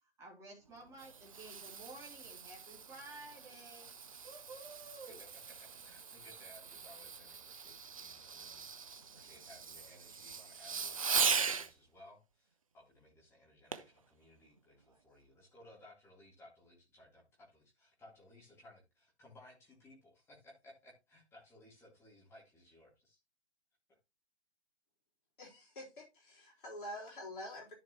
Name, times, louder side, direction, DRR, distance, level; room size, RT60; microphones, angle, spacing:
voice 1, 0.2-3.9 4.2-5.2, right 2 dB, 10° right, 2.2 m, -52 dB
Fireworks, 0.7-11.7 13.7-14.0 14.6-14.7, right 6 dB, 30° right, 0.5 m, -40 dB
voice 2, 5.6-23.2, left 1 dB, 5° left, 2.2 m, -60 dB
voice 3, 25.4-27.7, left 1 dB, 45° left, 3.7 m, -47 dB
13.5 x 4.5 x 2.9 m
figure-of-eight pair, 140°, 34 cm